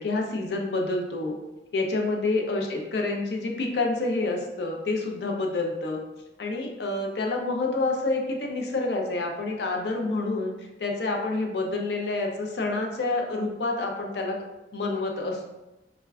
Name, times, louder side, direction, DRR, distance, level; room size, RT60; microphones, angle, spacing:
voice 1, 0.0-1.4 1.7-6.0 6.4-10.5 10.8-14.4 14.7-15.5, left 2 dB, 65° left, 1 dB, 0.5 m, -28 dB
2.3 x 2.2 x 3.3 m, 0.98 s
head